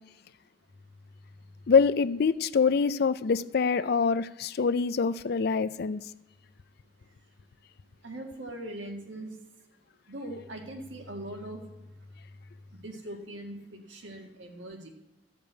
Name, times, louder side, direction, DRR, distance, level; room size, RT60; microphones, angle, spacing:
voice 1, 1.7-6.0, left 5 dB, 60° left, 15 dB, 0.4 m, -25 dB
voice 2, 8.0-9.3 10.1-11.6 12.8-14.9, right 1 dB, 90° right, 2 dB, 1.8 m, -40 dB
13.5 x 5.2 x 8.2 m, 1.1 s
head